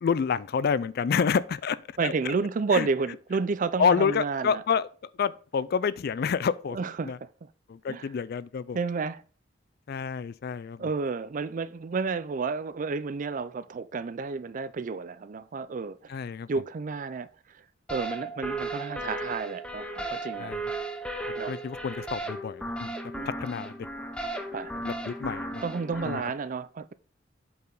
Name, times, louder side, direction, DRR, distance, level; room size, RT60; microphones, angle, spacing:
voice 1, 0.0-2.3 2.7-2.9 3.8-4.9 5.2-6.8 7.0-7.2 7.7-8.8 9.9-10.9 16.1-16.5 20.4-20.6 21.5-22.9 23.2-23.9 24.8-25.6 26.0-26.2, left 6 dB, 55° left, 0.3 m, -28 dB
voice 2, 2.0-4.6 6.7-7.1 7.9-8.1 8.7-9.2 10.8-16.2 16.5-17.3 17.9-20.5 21.4-21.5 23.1-23.3 24.5-24.9 25.6-26.9, right 4 dB, 45° right, 0.4 m, -31 dB
sound 1, 17.9-26.2, right 2 dB, 5° left, 0.8 m, -35 dB
8.3 x 4.7 x 3.9 m
head